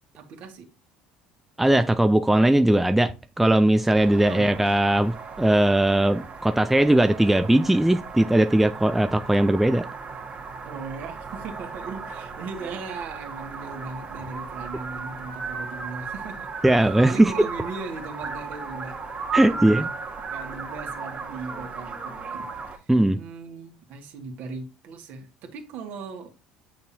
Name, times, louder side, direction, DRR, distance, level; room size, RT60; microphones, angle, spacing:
voice 1, 0.1-0.7 4.3-5.0 10.6-19.0 19.4-19.9 20.3-26.3, right 4 dB, 55° right, 2.0 m, -38 dB
voice 2, 1.6-9.9 16.6-17.3 19.3-19.9 22.9-23.2, right 1 dB, 5° right, 0.5 m, -19 dB
sound 1, 4.0-22.8, right 5 dB, 35° right, 2.1 m, -36 dB
8.4 x 6.2 x 2.9 m
figure-of-eight pair, 60°, 4 cm